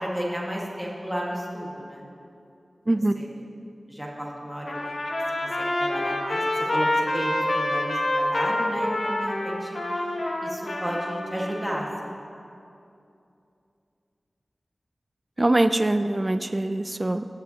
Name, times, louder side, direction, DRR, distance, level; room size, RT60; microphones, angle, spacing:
voice 1, 0.0-2.0 3.1-3.4 3.9-4.9 5.6-9.7 10.4-12.1, equal, 10° right, -3 dB, 1.6 m, -33 dB
Trumpet, 4.7-11.8, left 1 dB, 60° left, 1.2 m, -27 dB
voice 2, 15.4-17.3, right 1 dB, 30° right, 10 dB, 0.3 m, -23 dB
18.0 x 7.7 x 2.8 m, 2.6 s
wide cardioid pair, 65°, 0 cm